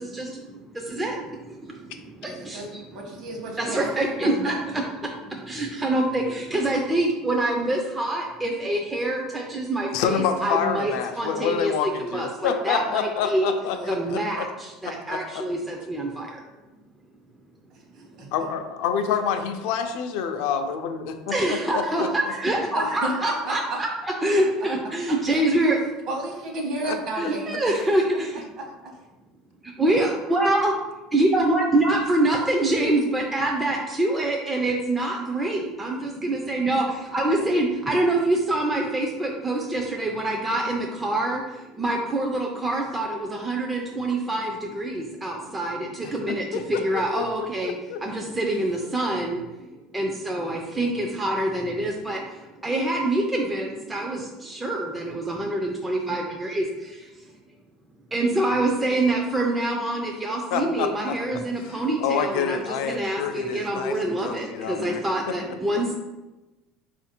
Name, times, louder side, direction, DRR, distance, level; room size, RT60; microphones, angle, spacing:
voice 1, 0.0-2.8 3.6-13.5 13.9-16.4 18.0-18.1 21.3-23.9 24.2-25.8 27.1-28.4 29.6-30.7 31.1-49.7 49.9-57.2 58.1-65.9, right 1 dB, 10° right, 0 dB, 0.3 m, -26 dB
voice 2, 2.2-3.9 4.2-4.5 13.7-14.1 17.9-18.3 22.7-23.8 25.1-25.2 26.1-27.6 28.1-29.0, right 1 dB, 50° right, 0 dB, 0.9 m, -33 dB
voice 3, 9.9-14.5 14.8-15.4 18.3-22.1 26.8-27.0 46.3-48.0 60.5-61.1 61.6-65.3, left 7 dB, 75° left, 6 dB, 0.4 m, -28 dB
3.5 x 2.4 x 4.2 m, 1.1 s
cardioid pair, 150°, 0 cm